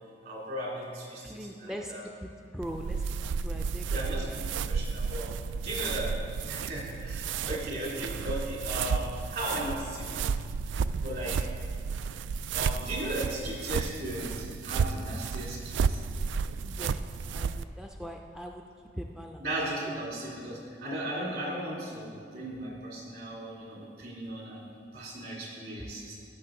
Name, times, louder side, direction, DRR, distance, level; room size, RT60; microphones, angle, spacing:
voice 1, 0.2-2.1 3.9-5.3 5.6-6.2 6.4-10.3 11.0-11.5 12.5-16.0 19.4-24.6 24.9-26.1, right 1 dB, 60° right, -4 dB, 2.6 m, -36 dB
voice 2, 1.2-1.9 2.2-3.0 3.4-4.0 16.6-17.0 17.3-18.6 19.0-19.4, equal, 5° right, 2 dB, 0.4 m, -41 dB
sound 1, 2.6-17.6, right 5 dB, 90° right, 0.3 m, -32 dB
15.5 x 6.9 x 3.8 m, 2.3 s
head